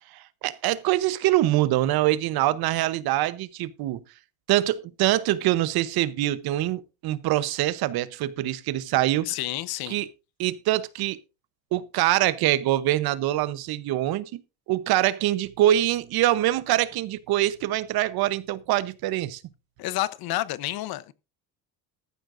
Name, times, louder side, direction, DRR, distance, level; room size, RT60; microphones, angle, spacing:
voice 1, 0.1-4.0 4.5-9.3 9.9-10.1 10.4-11.2 11.7-14.4 14.7-19.4, right 14 dB, 70° right, 0.9 m, -24 dB
voice 2, 9.3-10.0 19.8-21.1, left 15 dB, 65° left, 0.9 m, -29 dB
14.0 x 12.5 x 2.6 m
cardioid pair, 135°, 39 cm